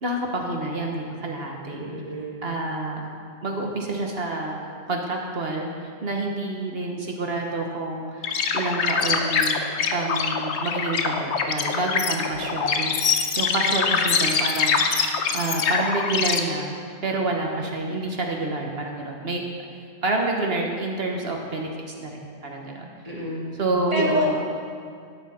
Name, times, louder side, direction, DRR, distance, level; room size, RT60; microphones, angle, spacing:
voice 1, 0.0-1.8 2.4-3.1 3.4-8.2 8.5-15.0 15.3-16.7 17.0-19.4 20.0-21.7 22.0-22.9 23.6-24.4, right 2 dB, 55° right, 1 dB, 1.3 m, -28 dB
voice 2, 1.7-2.4 17.6-17.7 23.0-23.4 23.9-24.3, left 1 dB, 30° right, -3 dB, 1.8 m, -27 dB
sound 1, 8.2-16.4, left 5 dB, 70° left, 1.0 m, -24 dB
13.0 x 8.9 x 4.2 m, 2.2 s
omnidirectional pair, 1.2 m